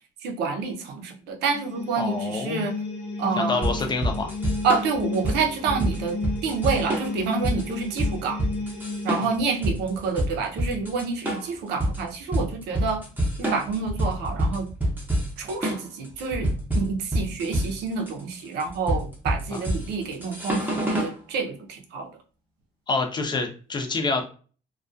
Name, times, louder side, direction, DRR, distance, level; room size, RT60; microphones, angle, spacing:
voice 1, 0.2-2.7 3.2-3.7 4.6-8.4 9.0-13.0 13.4-14.7 15.4-22.1, right 5 dB, 80° right, 4 dB, 0.6 m, -28 dB
sound 1, 1.5-9.4, left 3 dB, 75° left, 0.7 m, -33 dB
voice 2, 2.0-2.7 3.4-4.3 19.5-19.6 22.9-24.2, left 3 dB, 25° left, 4 dB, 0.5 m, -27 dB
sound 2, 3.6-21.2, equal, 10° right, 0.7 m, -27 dB
2.3 x 2.2 x 2.5 m, 0.39 s
cardioid pair, 110°, 17 cm